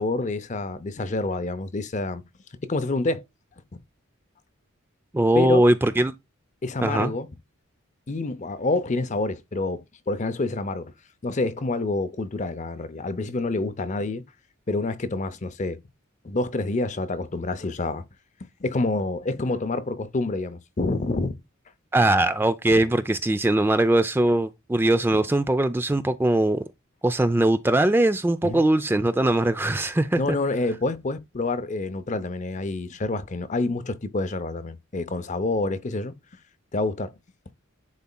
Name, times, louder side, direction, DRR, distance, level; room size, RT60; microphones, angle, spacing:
voice 1, 0.0-2.2 2.6-3.2 5.3-5.6 6.6-7.3 8.1-10.9 11.2-14.2 14.7-15.8 16.2-18.0 18.6-21.3 25.1-25.2 28.4-28.7 30.2-36.1 36.7-37.1, left 2 dB, 35° left, 0.6 m, -27 dB
voice 2, 5.1-6.1 6.8-7.1 21.9-26.6 27.0-30.2, right 1 dB, 10° right, 0.3 m, -21 dB
10.5 x 4.1 x 2.2 m
head